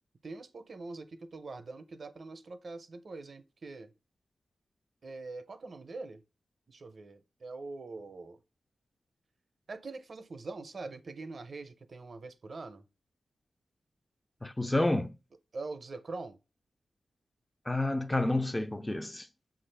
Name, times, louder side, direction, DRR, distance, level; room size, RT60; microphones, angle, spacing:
voice 1, 0.2-3.9 5.0-6.2 6.7-8.4 9.7-12.8 15.5-16.4, right 3 dB, 60° right, 0.5 m, -43 dB
voice 2, 14.4-15.1 17.7-19.3, left 2 dB, 15° left, 0.3 m, -29 dB
5.7 x 2.4 x 3.2 m
cardioid pair, 65°, 0 cm